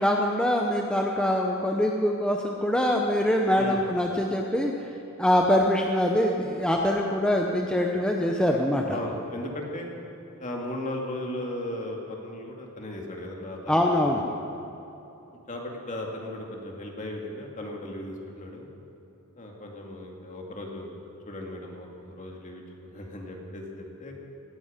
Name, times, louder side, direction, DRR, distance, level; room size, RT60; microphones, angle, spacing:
voice 1, 0.0-4.7 5.2-9.0 13.7-14.2, left 1 dB, 5° left, 0 dB, 0.8 m, -24 dB
voice 2, 8.9-9.9 10.4-13.8 14.1-14.4 15.5-18.7 19.4-21.0 21.3-22.6 22.9-24.1, left 1 dB, 35° left, 0 dB, 2.3 m, -36 dB
18.0 x 15.5 x 5.1 m, 3.0 s
head